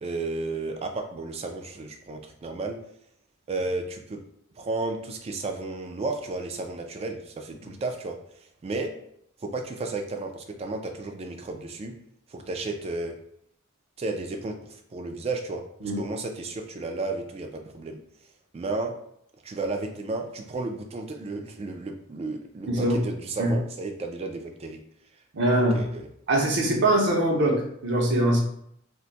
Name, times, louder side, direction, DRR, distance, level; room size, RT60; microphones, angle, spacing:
voice 1, 0.0-2.8 3.5-4.2 4.5-8.2 8.6-8.9 9.4-11.9 12.3-13.2 14.0-15.6 15.9-18.0 18.5-19.0 19.4-24.8 25.7-26.1, right 3 dB, 30° right, 4 dB, 0.3 m, -33 dB
voice 2, 22.7-23.0 23.4-23.5 25.3-25.9 26.3-28.4, right 1 dB, 55° right, 1 dB, 0.7 m, -23 dB
2.5 x 2.2 x 3.9 m, 0.71 s
head